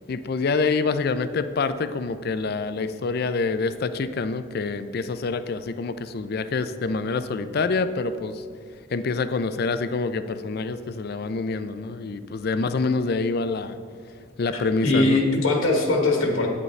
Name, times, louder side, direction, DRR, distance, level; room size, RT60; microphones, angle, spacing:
voice 1, 0.1-8.4 8.9-13.8 14.4-15.2, left 4 dB, 50° left, 12 dB, 0.4 m, -26 dB
voice 2, 14.5-16.5, left 2 dB, 80° left, 1 dB, 1.4 m, -21 dB
9.5 x 9.0 x 3.2 m, 2.1 s
head